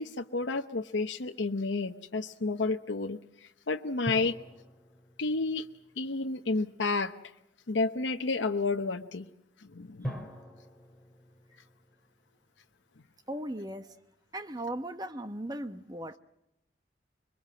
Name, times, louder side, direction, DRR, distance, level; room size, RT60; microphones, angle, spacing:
voice 1, 0.0-3.2 3.7-4.3 5.2-5.6 6.0-7.1 7.7-9.3 9.7-10.1, left 3 dB, 80° left, 0.9 m, -30 dB
sound 1, 4.1-6.7 10.0-12.7 12.9-13.0, equal, ahead, 3.2 m, -44 dB
voice 2, 13.3-13.9 14.3-16.2, right 1 dB, 20° right, 1.0 m, -37 dB
25.5 x 23.0 x 7.7 m
head